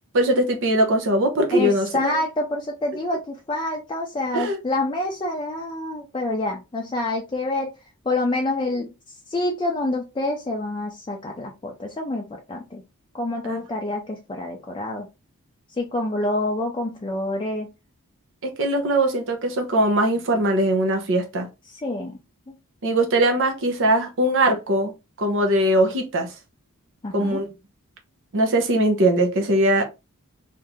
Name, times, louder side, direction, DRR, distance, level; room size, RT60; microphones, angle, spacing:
voice 1, 0.1-2.2 4.3-4.6 13.4-13.6 18.4-21.5 22.8-24.9 25.2-26.3 27.1-27.5 28.3-29.9, right 1 dB, 60° right, 0.8 m, -21 dB
voice 2, 1.5-7.7 8.1-8.9 9.3-12.8 13.1-15.1 15.8-17.7 21.7-22.1 22.5-22.6 27.0-27.4, left 2 dB, 20° left, 0.5 m, -27 dB
2.9 x 2.7 x 3.5 m
head